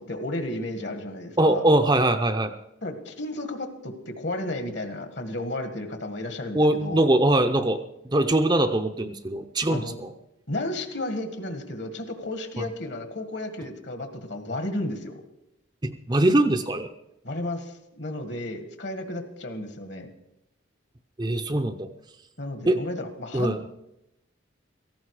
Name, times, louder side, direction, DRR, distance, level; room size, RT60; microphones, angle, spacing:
voice 1, 0.0-1.6 2.8-7.1 9.7-10.0 10.5-15.2 17.2-20.1 22.4-23.8, left 1 dB, 60° left, 7 dB, 1.8 m, -33 dB
voice 2, 1.4-2.5 6.5-10.1 12.6-12.7 15.8-16.9 21.2-21.9 22.7-22.8 23.3-23.6, right 1 dB, 20° right, 7 dB, 0.6 m, -22 dB
17.0 x 15.0 x 4.9 m, 0.87 s
head